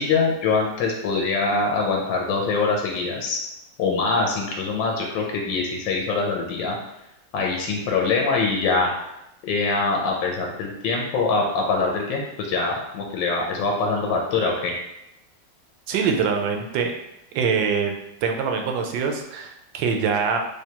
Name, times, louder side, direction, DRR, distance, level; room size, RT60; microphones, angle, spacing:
voice 1, 0.0-3.4 3.8-6.8 7.3-8.9 9.4-14.7, left 4 dB, 90° left, 0 dB, 1.3 m, -23 dB
voice 2, 15.9-16.9 17.3-17.9 18.2-20.4, right 6 dB, 85° right, 4 dB, 1.3 m, -24 dB
3.3 x 3.3 x 2.8 m, 0.85 s
omnidirectional pair, 2.0 m